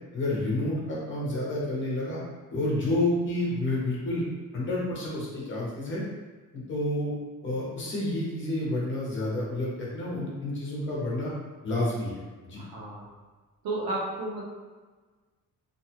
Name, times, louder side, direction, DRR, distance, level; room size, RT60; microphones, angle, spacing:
voice 1, 0.1-2.2 2.5-4.2 4.5-6.0 6.5-7.1 7.4-11.3 11.6-12.1 12.4-12.6, left 1 dB, 35° left, -5 dB, 0.8 m, -29 dB
voice 2, 12.6-13.1 13.6-14.5, right 2 dB, 90° right, -4 dB, 0.8 m, -32 dB
2.6 x 2.3 x 2.8 m, 1.4 s
cardioid pair, 165°, 35 cm